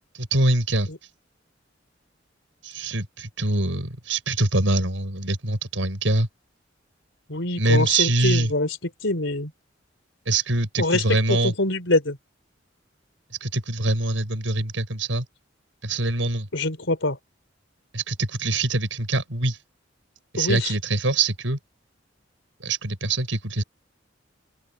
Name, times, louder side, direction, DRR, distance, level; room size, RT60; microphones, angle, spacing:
voice 1, 0.1-0.9 2.6-6.3 7.6-8.5 10.3-11.5 13.4-15.3 15.8-16.5 17.9-19.6 20.3-21.6 22.6-23.6, right 2 dB, 90° right, 5.4 m, -24 dB
voice 2, 7.3-8.8 9.0-9.5 10.8-11.0 11.3-12.2 16.5-17.2 20.4-20.7, left 2 dB, 75° left, 4.3 m, -24 dB
head